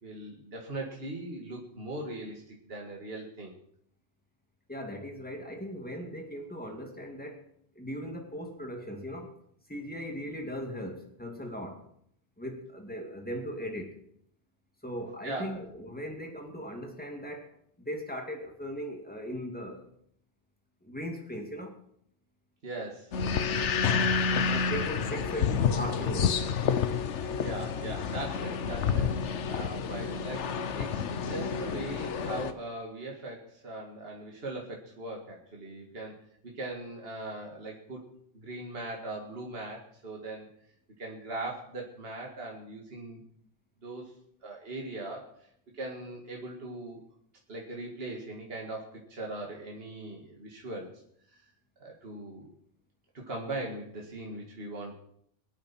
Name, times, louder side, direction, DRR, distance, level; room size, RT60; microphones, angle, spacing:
voice 1, 0.0-3.5 15.2-15.6 22.6-23.2 27.4-36.2 36.4-38.0 38.3-40.5 41.0-43.2 43.8-44.2 44.4-45.5 45.7-47.0 47.5-50.9 51.3-51.4 51.8-52.5 53.1-55.0, right 2 dB, 50° right, -1 dB, 2.3 m, -40 dB
voice 2, 4.7-7.5 7.8-9.4 9.7-11.8 12.4-14.0 14.8-19.9 20.8-21.8 24.4-26.5, equal, 5° left, 2 dB, 2.4 m, -38 dB
sound 1, 23.1-32.5, left 6 dB, 70° left, 1.1 m, -29 dB
23.0 x 8.9 x 4.5 m, 0.67 s
omnidirectional pair, 1.3 m